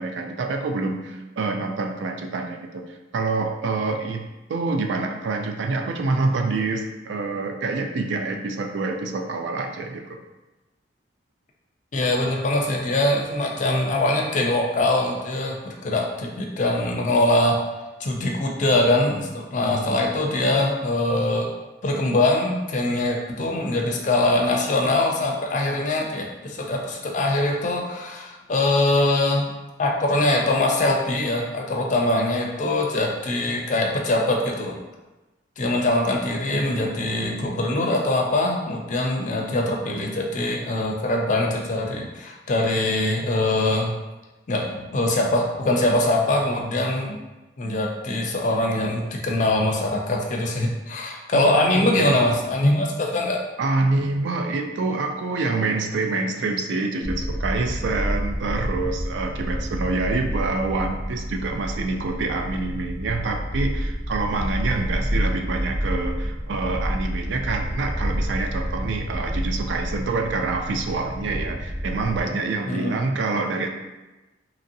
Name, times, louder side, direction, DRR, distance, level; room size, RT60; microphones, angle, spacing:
voice 1, 0.0-2.8 3.1-4.2 4.5-10.2 51.3-52.2 53.6-73.7, right 3 dB, 80° right, 4 dB, 0.4 m, -26 dB
voice 2, 11.9-17.6 18.0-21.5 21.8-29.5 29.8-34.8 35.6-43.9 44.5-47.2 47.6-53.4 72.7-72.9, left 2 dB, 45° left, 1 dB, 0.4 m, -23 dB
sound 1, 57.0-72.2, equal, 35° right, 0.9 m, -29 dB
2.9 x 2.7 x 2.6 m, 1.1 s
head